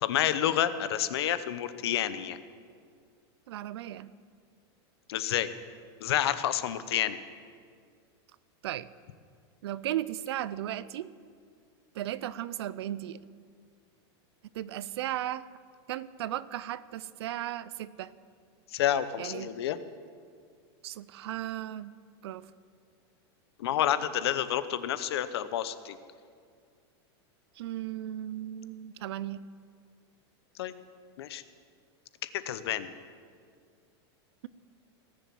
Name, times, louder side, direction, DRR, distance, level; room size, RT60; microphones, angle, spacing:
voice 1, 0.0-2.4 5.1-5.5 6.0-7.2 18.7-19.8 23.6-26.0 30.6-30.7 31.2-31.4 32.2-32.9, left 11 dB, 70° left, 13 dB, 0.8 m, -29 dB
voice 2, 3.5-4.1 8.6-8.9 9.6-11.1 11.9-13.2 14.5-15.4 15.9-18.1 19.2-19.6 20.8-21.9 22.2-22.5 27.6-29.4, right 12 dB, 70° right, 18 dB, 0.5 m, -36 dB
18.5 x 7.0 x 7.6 m, 2.1 s
supercardioid pair, 175°, 14 cm